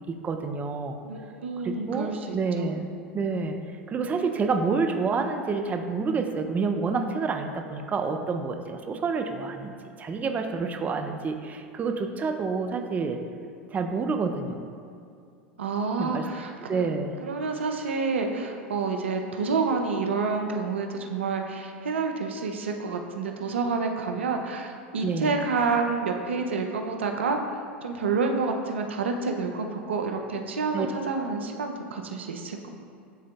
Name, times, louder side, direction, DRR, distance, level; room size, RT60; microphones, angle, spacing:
voice 1, 0.0-1.0 1.6-3.6 3.9-9.7 10.0-13.2 13.7-14.6 16.0-16.3 16.7-17.1 25.0-25.4 30.7-30.9, right 4 dB, 25° right, 5 dB, 0.5 m, -28 dB
voice 2, 1.0-2.7 15.6-16.9 17.2-32.7, right 4 dB, 85° right, 4 dB, 0.5 m, -29 dB
11.0 x 3.7 x 2.3 m, 2.4 s
hypercardioid pair, 90°, 6 cm